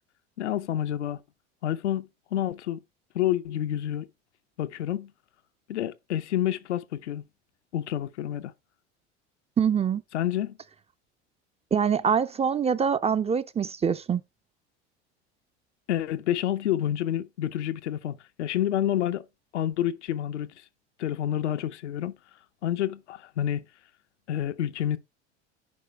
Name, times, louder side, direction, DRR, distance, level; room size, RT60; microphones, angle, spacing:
voice 1, 0.4-1.2 1.6-2.8 3.1-4.1 4.6-5.1 5.7-7.3 7.7-8.5 10.1-10.6 15.9-19.2 19.5-20.6 21.0-22.1 22.6-23.7 24.3-25.0, left 11 dB, 85° left, 0.7 m, -28 dB
voice 2, 9.6-10.0 11.7-14.2, right 7 dB, 20° right, 0.5 m, -24 dB
9.7 x 5.0 x 3.3 m
hypercardioid pair, 80°, 34 cm